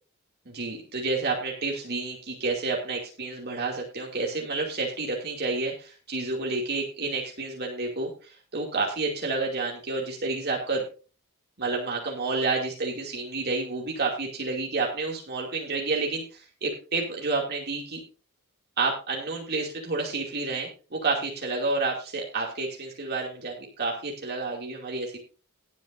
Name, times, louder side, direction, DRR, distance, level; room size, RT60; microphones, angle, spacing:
voice 1, 0.5-10.8 11.6-18.0 18.8-25.2, right 3 dB, 45° right, -1 dB, 2.6 m, -30 dB
18.5 x 9.3 x 2.6 m, 0.35 s
head